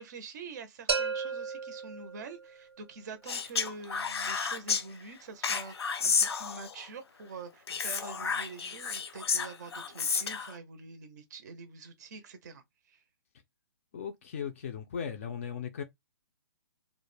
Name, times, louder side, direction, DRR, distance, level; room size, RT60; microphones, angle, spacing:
voice 1, 0.0-13.0, right 4 dB, 45° right, 0.5 m, -46 dB
sound 1, 0.9-2.7, right 5 dB, 90° right, 0.6 m, -34 dB
Speech, 3.3-4.8 5.4-6.9 7.7-10.5, left 6 dB, 80° left, 0.6 m, -31 dB
voice 2, 13.9-15.8, left 7 dB, 30° left, 0.4 m, -37 dB
2.2 x 2.0 x 3.1 m
hypercardioid pair, 165°, 13 cm